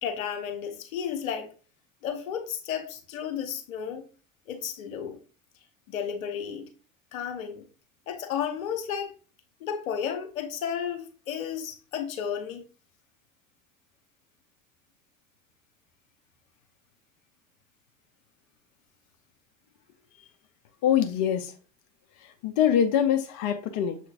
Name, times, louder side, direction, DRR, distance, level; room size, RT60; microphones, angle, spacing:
voice 1, 0.0-1.5 2.0-4.0 4.5-5.2 5.9-6.7 7.1-7.6 8.1-9.2 9.6-12.6, left 8 dB, 80° left, 1.0 m, -33 dB
voice 2, 20.8-21.5 22.4-24.0, left 9 dB, 55° left, 0.7 m, -24 dB
6.8 x 3.0 x 2.5 m
hypercardioid pair, 70°, 40 cm